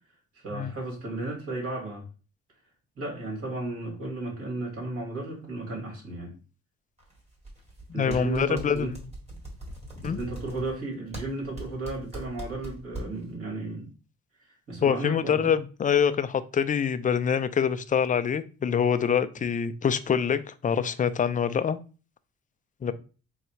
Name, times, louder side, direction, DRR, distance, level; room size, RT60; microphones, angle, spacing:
voice 1, 0.3-2.0 3.0-6.3 7.9-8.9 9.9-13.9 14.4-15.5, right 2 dB, 50° right, 2.4 m, -34 dB
sound 1, 7.0-7.8 8.1-13.3, right 1 dB, 20° right, 2.1 m, -40 dB
voice 2, 7.9-8.9 10.0-10.2 14.8-21.8 22.8-22.9, left 7 dB, 25° left, 0.4 m, -25 dB
3.9 x 2.4 x 4.4 m
cardioid pair, 90°, 30 cm